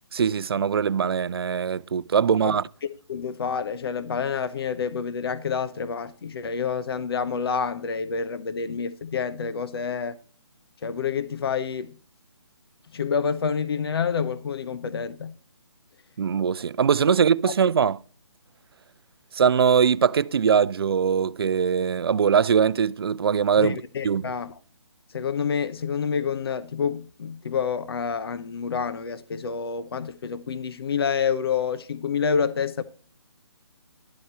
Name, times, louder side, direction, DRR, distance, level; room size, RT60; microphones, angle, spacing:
voice 1, 0.1-2.6 16.2-18.0 19.3-23.8 24.0-24.2, right 7 dB, 55° right, 0.5 m, -21 dB
voice 2, 3.1-10.2 10.8-11.9 12.9-15.3 17.4-17.5 23.6-24.5 25.1-32.8, left 6 dB, 55° left, 0.8 m, -28 dB
11.5 x 7.9 x 3.0 m
figure-of-eight pair, 150°, 15 cm